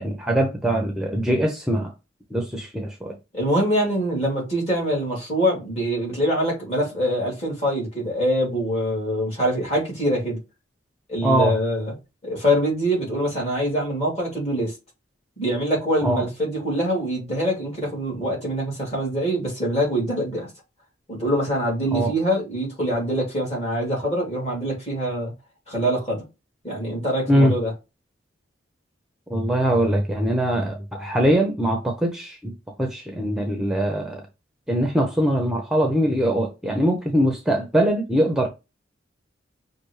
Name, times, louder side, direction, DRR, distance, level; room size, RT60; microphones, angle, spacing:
voice 1, 0.0-1.9 2.3-3.2 11.2-11.5 16.0-16.2 21.9-22.1 27.3-27.5 29.3-34.2 34.7-38.5, right 1 dB, 5° right, 0.6 m, -22 dB
voice 2, 3.3-10.4 11.1-11.9 12.2-14.7 15.4-20.5 21.1-25.3 25.7-26.2 26.6-27.7, equal, 35° left, 2.6 m, -24 dB
6.0 x 2.7 x 3.1 m
head